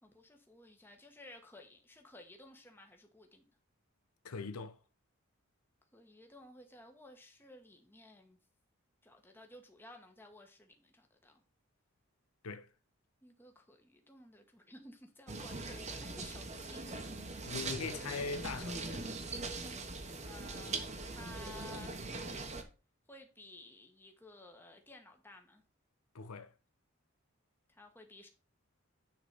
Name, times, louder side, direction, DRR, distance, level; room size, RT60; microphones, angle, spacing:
voice 1, 0.0-3.5 5.9-8.4 9.0-11.4 13.2-17.0 18.8-18.9 20.2-22.1 23.1-25.6 27.7-28.3, left 1 dB, 10° left, 1.2 m, -55 dB
voice 2, 4.2-4.8 12.4-12.7 17.5-19.1 19.5-19.7 26.1-26.5, left 4 dB, 90° left, 0.7 m, -41 dB
sound 1, 15.3-22.6, right 3 dB, 30° right, 1.1 m, -41 dB
9.6 x 4.0 x 5.6 m
head